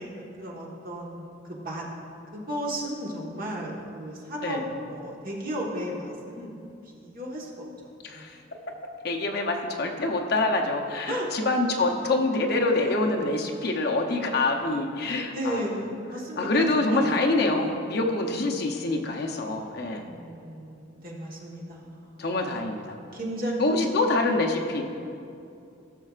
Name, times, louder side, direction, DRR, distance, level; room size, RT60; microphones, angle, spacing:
voice 1, 0.0-1.8 2.3-6.6 7.0-7.5 8.1-8.3 11.1-11.3 12.0-12.1 12.8-13.0 15.3-17.0 19.9-22.0 23.1-23.8, equal, 45° right, -3 dB, 1.5 m, -34 dB
voice 2, 8.0-8.4 9.0-15.6 16.4-20.1 22.2-23.0 23.6-24.8, left 2 dB, 55° left, 2 dB, 0.7 m, -26 dB
16.5 x 6.5 x 2.5 m, 2.6 s
head